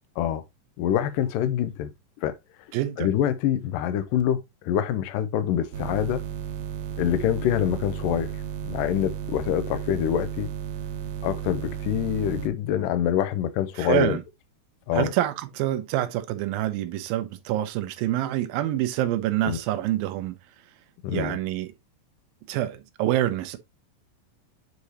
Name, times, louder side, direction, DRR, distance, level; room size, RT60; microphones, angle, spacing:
voice 1, 0.8-1.9 2.2-2.4 3.0-6.2 7.0-8.3 8.6-10.5 11.2-14.2 14.9-15.1 19.4-19.6 21.0-21.4, left 10 dB, 80° left, 2.3 m, -25 dB
voice 2, 2.7-3.1 13.8-14.2 14.9-20.4 21.1-21.7 22.5-23.6, right 13 dB, 90° right, 2.6 m, -26 dB
sound 1, 5.7-12.5, right 9 dB, 70° right, 2.1 m, -34 dB
8.2 x 4.9 x 2.8 m
omnidirectional pair, 4.1 m